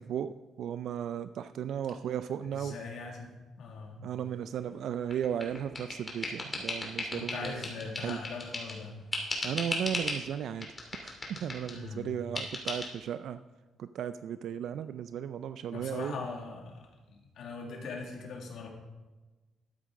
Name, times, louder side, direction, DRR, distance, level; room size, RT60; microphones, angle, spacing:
voice 1, 0.0-2.7 4.0-7.6 8.0-8.2 9.4-10.7 11.0-13.4 13.8-16.2, right 9 dB, 70° right, 11 dB, 0.3 m, -35 dB
voice 2, 2.5-3.3 3.6-4.0 7.1-8.9 11.4-12.1 15.7-18.7, left 4 dB, 75° left, 1 dB, 2.0 m, -41 dB
bottle cap, 5.1-8.8 9.1-10.2 10.6-11.8 12.4-12.9, left 2 dB, 30° left, 2.7 m, -36 dB
13.0 x 9.1 x 3.7 m, 1.2 s
cardioid pair, 90°, 0 cm